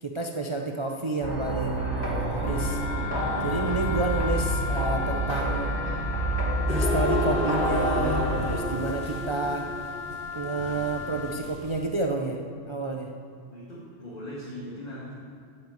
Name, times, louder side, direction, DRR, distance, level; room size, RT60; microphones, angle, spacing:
voice 1, 0.0-2.8 3.4-5.7 6.7-9.7 10.3-12.4 12.7-13.1, right 2 dB, 35° right, 2 dB, 0.5 m, -30 dB
sound 1, 1.2-8.5, right 1 dB, 20° right, 1.8 m, -28 dB
Wind instrument woodwind instrument, 2.4-11.5, left 7 dB, 65° left, 0.7 m, -36 dB
sound 2, 6.7-11.8, right 1 dB, 5° left, 3.0 m, -31 dB
voice 2, 13.5-15.1, equal, 30° left, -8 dB, 2.1 m, -39 dB
8.7 x 7.6 x 8.1 m, 2.4 s
omnidirectional pair, 1.4 m